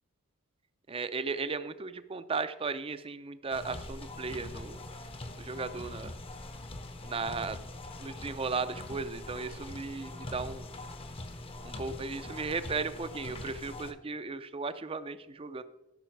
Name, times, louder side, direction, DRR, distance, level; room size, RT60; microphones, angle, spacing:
voice 1, 0.9-4.8 5.4-6.1 7.0-7.6 8.0-10.7 11.6-15.6, right 4 dB, 25° right, 12 dB, 0.5 m, -36 dB
sound 1, 3.5-13.9, left 2 dB, 25° left, 0.7 m, -43 dB
13.0 x 5.6 x 4.6 m, 0.98 s
head